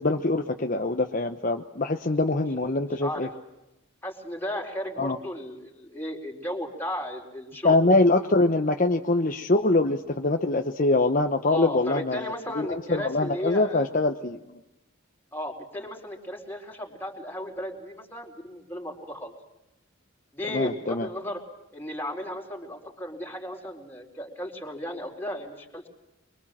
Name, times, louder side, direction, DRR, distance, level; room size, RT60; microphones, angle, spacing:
voice 1, 0.0-3.3 5.0-5.2 7.6-14.4 20.5-21.1, left 2 dB, 40° left, 4 dB, 1.1 m, -24 dB
voice 2, 2.9-3.3 4.0-7.8 11.4-13.9 15.3-19.3 20.3-21.4 21.7-25.9, equal, 10° left, 1 dB, 4.4 m, -35 dB
24.5 x 24.0 x 7.6 m, 0.91 s
head